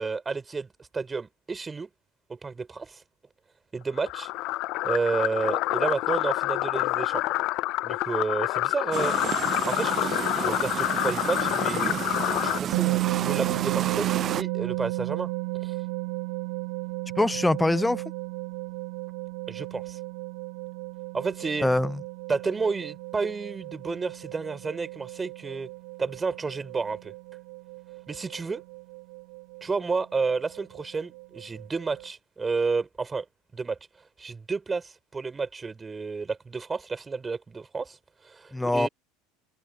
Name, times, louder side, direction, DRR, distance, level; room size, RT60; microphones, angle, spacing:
voice 1, 0.0-1.9 2.3-3.0 3.7-4.3 4.8-7.2 7.8-9.1 9.7-11.9 12.4-15.3 15.6-15.8 19.5-20.0 21.1-21.7 22.3-25.7 26.0-27.1 28.1-28.6 29.6-33.2 33.5-33.8 34.2-38.0 38.2-38.9, right 4 dB, 20° right, 5.8 m, -31 dB
sound 1, 4.0-12.6, left 20 dB, 50° left, 0.3 m, -27 dB
sound 2, 8.9-14.4, right 10 dB, 35° right, 0.6 m, -31 dB
sound 3, 12.7-32.1, right 30 dB, 55° right, 1.1 m, -34 dB
voice 2, 17.2-18.0 21.6-22.0 38.5-38.9, left 2 dB, 5° left, 0.6 m, -23 dB
figure-of-eight pair, 70°, 0 cm